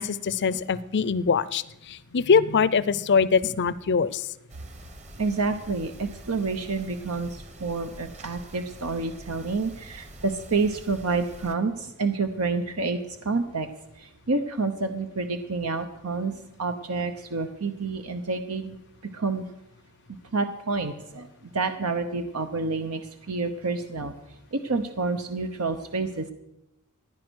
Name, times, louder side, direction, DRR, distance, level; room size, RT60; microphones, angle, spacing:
voice 1, 0.0-4.3, left 5 dB, 50° left, 18 dB, 0.6 m, -23 dB
sound 1, 4.5-11.5, right 1 dB, 30° right, 1.3 m, -45 dB
voice 2, 5.2-13.7 14.0-16.3 16.6-18.8 19.0-19.4 20.3-21.3 21.5-24.1 24.5-26.3, right 3 dB, 75° right, 8 dB, 0.9 m, -28 dB
15.5 x 10.0 x 6.3 m, 0.87 s
head